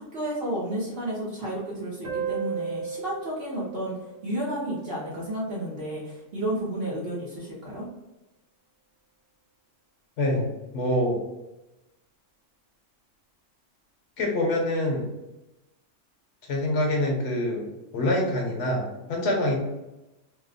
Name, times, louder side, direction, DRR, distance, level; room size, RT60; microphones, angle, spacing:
voice 1, 0.0-3.9 4.2-7.9, right 1 dB, 55° right, -6 dB, 0.9 m, -32 dB
sound 1, 2.0-5.2, right 6 dB, 80° right, 1.1 m, -35 dB
voice 2, 10.2-11.2 14.2-15.1 16.4-19.5, left 1 dB, 60° left, 0 dB, 1.1 m, -26 dB
2.8 x 2.1 x 3.9 m, 0.98 s
omnidirectional pair, 1.3 m